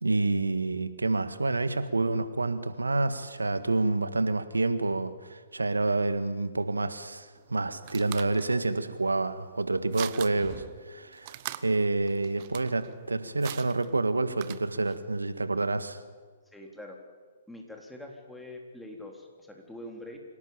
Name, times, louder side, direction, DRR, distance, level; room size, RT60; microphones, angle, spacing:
voice 1, 0.0-11.3 11.6-16.0, right 2 dB, 80° right, 12 dB, 1.6 m, -28 dB
sound 1, 7.3-15.0, right 15 dB, 40° right, 1.0 m, -44 dB
voice 2, 16.5-17.0 17.5-20.2, left 1 dB, 5° left, 1 dB, 3.7 m, -44 dB
26.0 x 17.5 x 8.9 m, 1.5 s
figure-of-eight pair, 120°, 0 cm